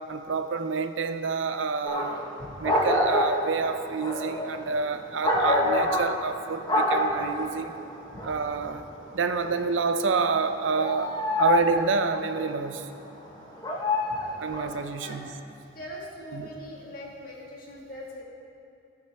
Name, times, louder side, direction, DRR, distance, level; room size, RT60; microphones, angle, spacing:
voice 1, 0.1-2.2 2.6-7.7 8.2-8.9 9.1-12.9 14.4-15.3 16.3-16.5, right 4 dB, 85° right, 9 dB, 0.5 m, -28 dB
sound 1, 1.9-2.3 2.6-6.4 6.7-7.6 7.9-9.9 10.4-12.4 13.3-14.8, left 1 dB, 20° left, 1.0 m, -26 dB
voice 2, 2.4-2.7 8.1-8.3 14.9-15.3 15.7-18.2, equal, 50° left, -4 dB, 1.9 m, -41 dB
17.0 x 5.7 x 3.5 m, 2.6 s
head